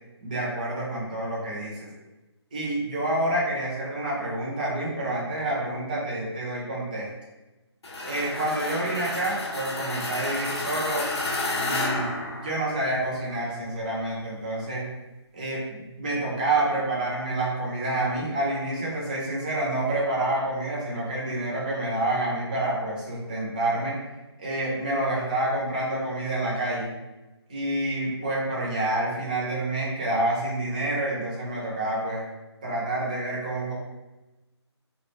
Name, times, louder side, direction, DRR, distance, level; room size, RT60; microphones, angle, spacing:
voice 1, 0.2-1.9 2.5-7.1 8.0-11.1 11.6-12.1 12.4-14.9 15.3-24.0 24.4-26.9 27.5-32.3 32.6-33.7, right 1 dB, 15° right, -5 dB, 0.4 m, -28 dB
sound 1, 7.8-13.1, left 2 dB, 65° left, 0.5 m, -31 dB
2.3 x 2.1 x 3.0 m, 1.1 s
figure-of-eight pair, 165°, 15 cm